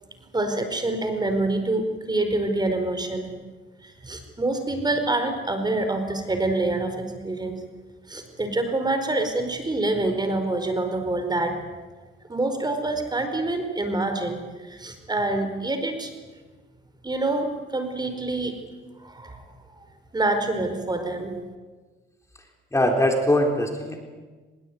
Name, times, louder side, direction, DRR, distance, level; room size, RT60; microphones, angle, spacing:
voice 1, 0.3-3.3 3.8-7.6 8.1-11.6 12.3-16.1 17.0-18.5 19.0-19.4 20.1-21.3, right 2 dB, 20° right, 7 dB, 4.6 m, -26 dB
voice 2, 22.7-24.0, left 1 dB, 15° left, 4 dB, 4.0 m, -21 dB
23.0 x 21.5 x 9.5 m, 1.3 s
cardioid pair, 90°, 20 cm